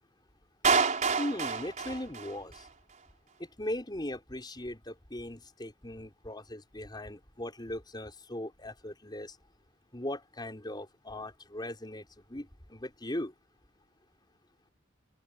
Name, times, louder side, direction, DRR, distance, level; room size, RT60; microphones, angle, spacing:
Clapping, 0.6-2.7, right 5 dB, 40° right, 4.6 m, -28 dB
voice 1, 1.2-2.7 3.6-9.4 9.9-13.3, left 1 dB, 20° left, 5.3 m, -39 dB
open air
head